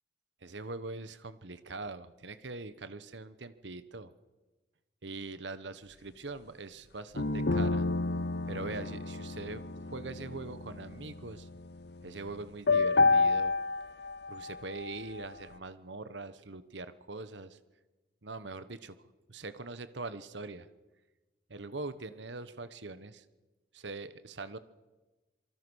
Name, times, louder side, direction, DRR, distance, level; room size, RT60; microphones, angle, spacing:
voice 1, 0.4-4.1 5.0-7.9 8.5-11.5 12.0-13.5 14.3-17.6 18.2-19.0 19.3-20.7 21.5-23.2 23.7-24.6, right 3 dB, 75° right, 12 dB, 1.2 m, -42 dB
sound 1, 7.2-12.0 12.7-15.3, left 3 dB, 60° left, 0.8 m, -30 dB
26.5 x 24.5 x 6.4 m, 1.2 s
head